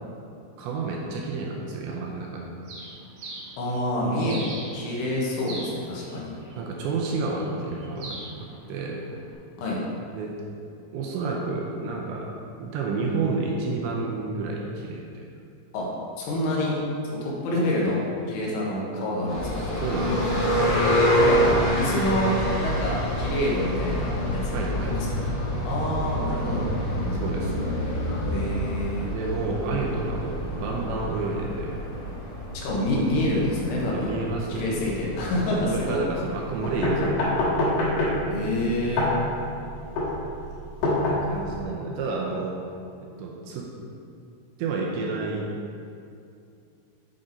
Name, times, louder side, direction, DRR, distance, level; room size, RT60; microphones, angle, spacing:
voice 1, 0.6-2.5 6.6-9.0 10.1-10.4 10.9-12.3 12.6-15.2 19.6-20.4 24.5-25.0 27.1-27.5 29.1-31.8 33.9-34.9 35.5-37.3 41.2-42.6 43.0-43.7 44.6-45.5, right 3 dB, 80° right, -1 dB, 2.7 m, -30 dB
Bird, 2.7-9.3, right 2 dB, 60° right, 2.5 m, -43 dB
voice 2, 3.6-4.4 4.7-6.4 9.6-9.8 15.7-15.9 16.2-16.8 17.2-18.0 18.3-19.7 21.1-22.4 22.6-25.0 25.7-26.7 28.3-29.1 32.5-34.2 34.5-36.0 38.3-39.1, left 1 dB, 90° left, -4 dB, 3.8 m, -27 dB
sound 1, 19.3-36.8, equal, 50° left, 1.5 m, -27 dB
sound 2, 36.6-41.6, left 1 dB, 70° left, 2.9 m, -25 dB
8.9 x 4.0 x 5.0 m, 2.5 s
omnidirectional pair, 5.5 m